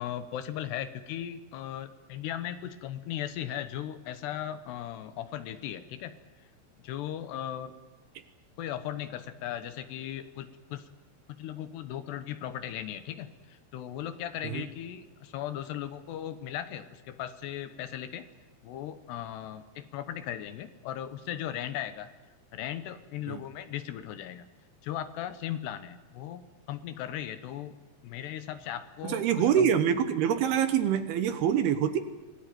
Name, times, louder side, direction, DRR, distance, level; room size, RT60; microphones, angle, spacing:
voice 1, 0.0-6.1 6.8-7.7 8.6-10.9 11.4-18.3 18.6-22.1 22.5-24.5 24.8-26.4 26.7-27.8 28.0-29.7, left 11 dB, 75° left, 11 dB, 2.9 m, -37 dB
voice 2, 29.0-32.0, right 9 dB, 70° right, 9 dB, 2.6 m, -25 dB
26.5 x 18.0 x 9.3 m, 1.2 s
omnidirectional pair, 5.3 m